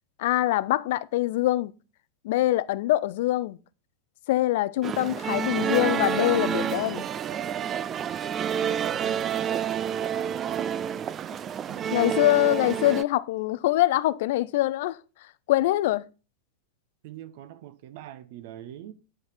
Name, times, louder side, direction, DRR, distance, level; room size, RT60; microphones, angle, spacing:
voice 1, 0.2-1.7 2.2-3.6 4.3-7.1 11.9-15.0 15.5-16.1, left 16 dB, 50° left, 0.4 m, -24 dB
sound 1, 4.8-13.0, right 8 dB, 25° right, 0.3 m, -29 dB
voice 2, 8.6-9.2 11.7-12.9 17.0-18.9, right 12 dB, 50° right, 0.8 m, -42 dB
9.6 x 4.9 x 5.5 m
figure-of-eight pair, 90°, 0 cm